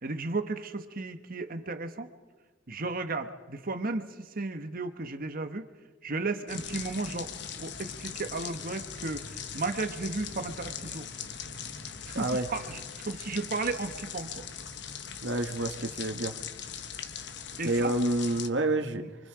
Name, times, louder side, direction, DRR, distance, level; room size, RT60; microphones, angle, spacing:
voice 1, 0.0-2.1 2.7-5.7 6.0-7.3 7.6-11.1 12.1-14.4 17.6-17.9, right 3 dB, 50° right, 8 dB, 1.3 m, -34 dB
sound 1, 6.5-18.5, left 7 dB, 65° left, 1.1 m, -40 dB
voice 2, 12.1-12.5 15.2-16.4 17.6-19.0, right 2 dB, 75° right, 5 dB, 1.8 m, -28 dB
28.5 x 24.5 x 5.0 m, 1.3 s
head